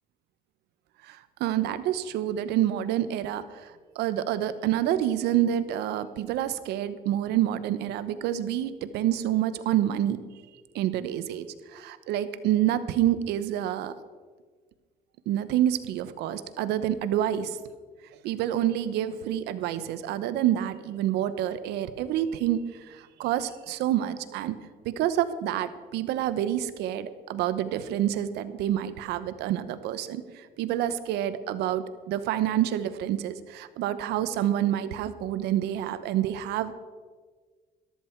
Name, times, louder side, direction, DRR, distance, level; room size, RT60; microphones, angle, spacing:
voice 1, 1.0-10.2 10.7-13.9 15.3-17.6 18.2-24.5 24.8-36.7, right 11 dB, 85° right, 13 dB, 0.9 m, -28 dB
13.5 x 13.0 x 4.5 m, 1.5 s
cardioid pair, 95°, 17 cm